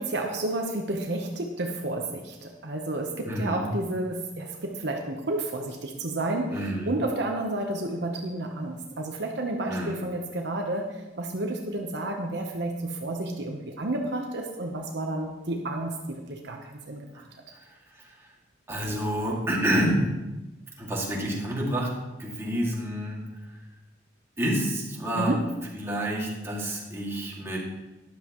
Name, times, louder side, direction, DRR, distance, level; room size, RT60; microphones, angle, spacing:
voice 1, 0.0-17.3 25.1-25.5, right 2 dB, 60° right, 2 dB, 1.0 m, -31 dB
voice 2, 3.2-3.7 6.5-7.0 9.6-10.0 17.1-17.2 17.5-18.3 18.7-20.2 20.8-23.6 24.4-25.3 25.7-27.6, equal, 15° right, -4 dB, 2.3 m, -29 dB
13.0 x 10.5 x 3.1 m, 1.1 s
head